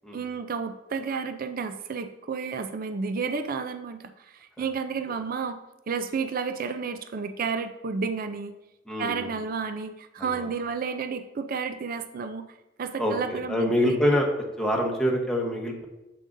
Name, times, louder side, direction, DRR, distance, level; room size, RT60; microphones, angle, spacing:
voice 1, 0.1-5.6 5.9-8.5 9.0-12.4 12.8-14.0, right 5 dB, 45° right, 9 dB, 0.4 m, -31 dB
voice 2, 8.9-9.3 10.2-10.5 13.0-15.9, equal, 5° left, -1 dB, 1.0 m, -26 dB
7.6 x 7.5 x 2.6 m, 0.98 s
head